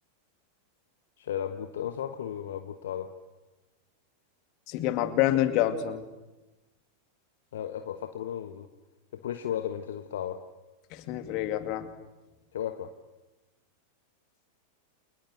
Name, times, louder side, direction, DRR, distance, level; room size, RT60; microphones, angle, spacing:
voice 1, 1.2-3.1 7.5-8.7 9.1-10.4 12.5-12.9, left 10 dB, 60° left, 8 dB, 1.4 m, -34 dB
voice 2, 4.7-6.0 10.9-11.9, left 12 dB, 40° left, 9 dB, 2.4 m, -27 dB
30.0 x 28.5 x 6.7 m, 1.1 s
figure-of-eight pair, 90°, 0 cm